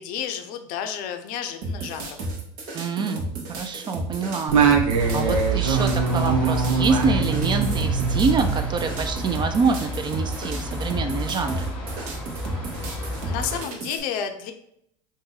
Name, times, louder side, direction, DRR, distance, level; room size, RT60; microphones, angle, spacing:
voice 1, 0.0-2.2 13.0-14.5, left 8 dB, 60° left, 7 dB, 0.5 m, -31 dB
sound 1, 1.6-14.0, right 2 dB, 65° right, 1.0 m, -33 dB
voice 2, 2.7-3.2 3.5-4.6 5.1-11.7, right 4 dB, 25° right, 7 dB, 0.4 m, -26 dB
Singing, 4.5-9.2, right 5 dB, 85° right, 0.6 m, -22 dB
sound 2, 5.0-13.6, left 1 dB, 5° left, 1.1 m, -32 dB
2.7 x 2.6 x 3.8 m, 0.72 s
hypercardioid pair, 90°, 17 cm